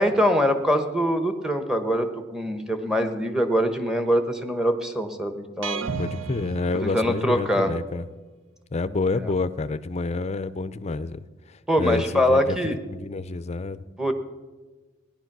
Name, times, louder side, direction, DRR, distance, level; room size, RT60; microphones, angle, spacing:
voice 1, 0.0-5.9 6.8-7.7 11.7-12.8 14.0-14.1, equal, 5° right, 6 dB, 1.0 m, -23 dB
sound 1, 5.6-7.6, right 5 dB, 80° right, 0.6 m, -33 dB
voice 2, 6.0-8.0 8.7-12.6 12.9-13.8, left 3 dB, 35° left, 14 dB, 0.5 m, -28 dB
16.5 x 11.0 x 6.0 m, 1.3 s
head